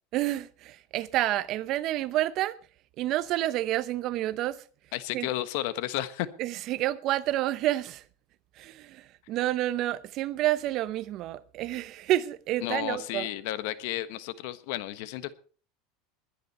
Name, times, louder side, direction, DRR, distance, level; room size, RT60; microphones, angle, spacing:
voice 1, 0.1-2.6 3.0-4.6 5.1-5.3 6.4-8.0 8.6-13.3, right 14 dB, 45° right, 0.8 m, -29 dB
voice 2, 4.9-6.3 12.6-15.3, left 14 dB, 65° left, 1.3 m, -32 dB
20.5 x 10.5 x 4.3 m
supercardioid pair, 140°, 0 cm